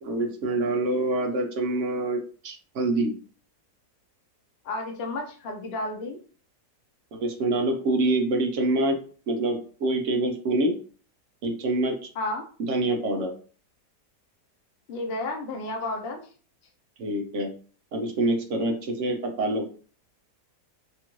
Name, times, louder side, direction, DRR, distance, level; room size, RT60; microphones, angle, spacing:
voice 1, 0.0-2.2 2.4-3.1 7.1-9.0 9.3-10.7 11.4-12.0 12.6-13.3 17.0-17.5 17.9-19.6, right 2 dB, 60° right, 3 dB, 0.8 m, -26 dB
voice 2, 4.6-6.2 12.2-12.4 14.9-16.3, left 2 dB, 80° left, 2 dB, 0.5 m, -32 dB
3.0 x 2.4 x 2.9 m, 0.41 s
omnidirectional pair, 1.8 m